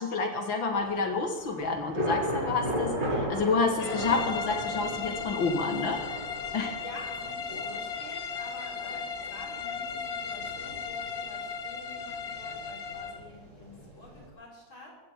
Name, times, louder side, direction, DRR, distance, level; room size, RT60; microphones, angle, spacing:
voice 1, 0.0-6.2 6.5-6.7, left 4 dB, 75° left, 4 dB, 2.3 m, -29 dB
Thunder / Rain, 0.7-14.3, equal, 65° right, 6.0 m, -37 dB
sound 1, 3.8-13.3, left 6 dB, 55° left, 1.5 m, -36 dB
voice 2, 6.8-14.9, left 1 dB, 90° left, -4 dB, 5.9 m, -48 dB
23.5 x 16.0 x 3.7 m, 1.1 s
omnidirectional pair, 2.1 m